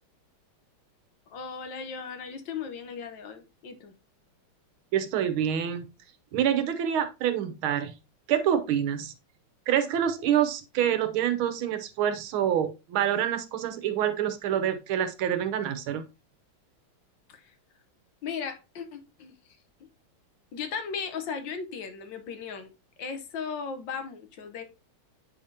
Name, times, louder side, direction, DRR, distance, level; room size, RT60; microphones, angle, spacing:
voice 1, 1.3-3.9 18.2-19.3 20.5-22.7 23.0-24.6, left 6 dB, 70° left, 1.6 m, -36 dB
voice 2, 4.9-5.9 6.3-7.9 8.3-9.1 9.7-16.1, right 9 dB, 90° right, 1.7 m, -26 dB
8.5 x 4.9 x 2.7 m
omnidirectional pair, 2.2 m